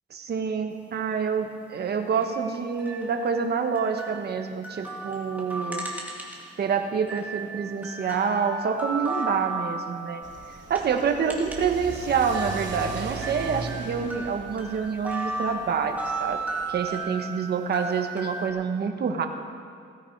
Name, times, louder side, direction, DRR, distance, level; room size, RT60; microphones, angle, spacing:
voice 1, 0.1-5.8 6.6-10.2 10.7-16.4 16.7-19.3, right 6 dB, 60° right, 5 dB, 1.4 m, -27 dB
sound 1, 2.1-6.6 7.0-11.8 12.1-18.5, right 3 dB, 10° right, 2.2 m, -35 dB
Car / Accelerating revving vroom, 10.2-16.9, right 3 dB, 80° right, 2.5 m, -39 dB
17.0 x 15.5 x 4.8 m, 2.2 s
wide cardioid pair, 135°, 19 cm